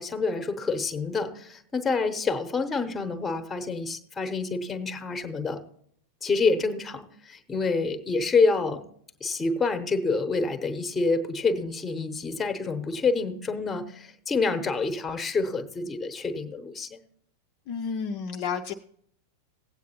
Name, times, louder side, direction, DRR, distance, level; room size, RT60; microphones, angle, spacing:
voice 1, 0.0-5.6 6.2-8.8 9.2-17.0, left 4 dB, 15° left, 9 dB, 0.9 m, -27 dB
voice 2, 17.7-18.7, left 6 dB, 45° left, 4 dB, 0.5 m, -31 dB
16.5 x 8.3 x 2.8 m, 0.65 s
figure-of-eight pair, 90°, 0 cm